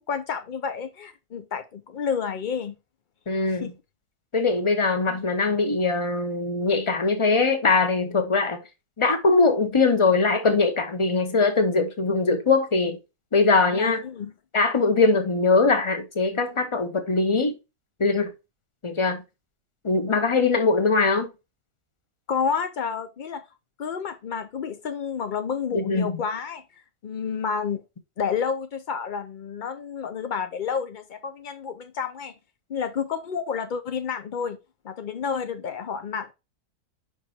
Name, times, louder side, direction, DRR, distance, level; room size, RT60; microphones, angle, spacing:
voice 1, 0.0-2.8 3.6-3.7 5.1-5.2 13.7-14.3 22.3-23.4 23.8-27.8 28.2-32.3 32.7-34.6 34.8-36.3, left 6 dB, 90° left, 0.4 m, -30 dB
voice 2, 3.3-3.7 4.3-8.6 9.0-13.0 13.3-14.0 14.5-17.5 18.0-18.3 18.8-19.2 19.8-21.3 25.7-26.1, left 3 dB, 25° left, 0.8 m, -21 dB
5.3 x 4.7 x 4.2 m
omnidirectional pair, 1.6 m